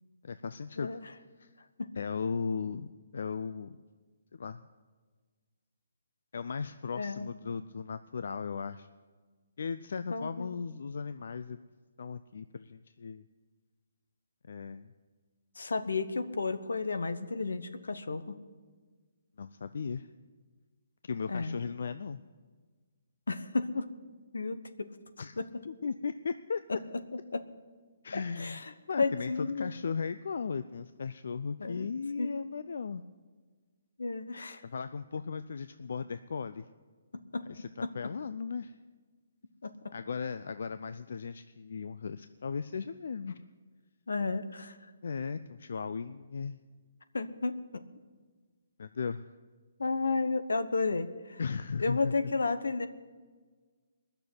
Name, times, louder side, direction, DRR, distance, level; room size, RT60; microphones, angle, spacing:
voice 1, 0.2-1.0 1.4-1.5 1.9-2.9 3.1-3.8 4.3-4.7 6.3-8.9 9.6-11.7 12.0-13.2 14.5-14.9 19.4-20.1 21.0-22.2 25.2-25.3 25.6-26.6 28.0-33.0 34.6-36.6 37.5-38.7 39.9-43.4 45.0-46.6 48.8-49.3 51.4-52.1, left 5 dB, 70° left, 12 dB, 0.5 m, -37 dB
voice 2, 0.8-1.1 1.8-1.9 6.9-7.3 10.1-10.5 15.6-18.4 21.3-21.6 23.3-23.9 24.3-24.9 25.4-25.5 26.7-26.8 27.3-27.4 28.4-28.6 29.0-29.7 31.6-31.9 32.2-32.3 34.0-34.6 37.3-37.4 37.8-37.9 39.6-39.7 44.1-44.7 47.1-47.8 49.8-51.4 51.8-52.9, left 3 dB, 90° left, 10 dB, 1.0 m, -32 dB
20.0 x 6.8 x 9.5 m, 1.4 s
hypercardioid pair, 155°, 0 cm